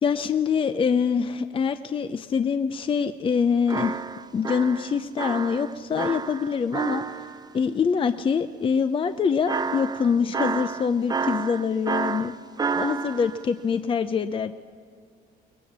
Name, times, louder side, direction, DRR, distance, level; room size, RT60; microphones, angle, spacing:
voice 1, 0.0-4.0 4.3-7.2 7.5-12.3 12.7-14.6, left 6 dB, 30° left, 10 dB, 0.6 m, -25 dB
sound 1, 3.7-7.5 9.5-13.4, right 5 dB, 25° right, 0.8 m, -30 dB
22.5 x 20.5 x 7.4 m, 2.2 s
cardioid pair, 110°, 17 cm